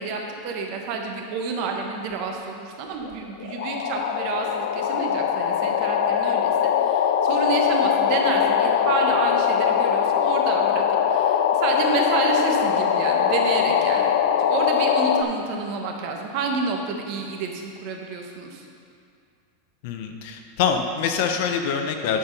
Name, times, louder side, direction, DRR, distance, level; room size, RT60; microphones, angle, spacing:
voice 1, 0.0-14.1 14.4-18.7, right 4 dB, 45° right, 2 dB, 1.1 m, -29 dB
sound 1, 3.0-3.1 3.4-15.2, left 8 dB, 75° left, 0.4 m, -22 dB
voice 2, 19.8-22.2, left 6 dB, 55° left, 5 dB, 0.8 m, -25 dB
10.5 x 4.5 x 5.4 m, 2.3 s
supercardioid pair, 150°, 0 cm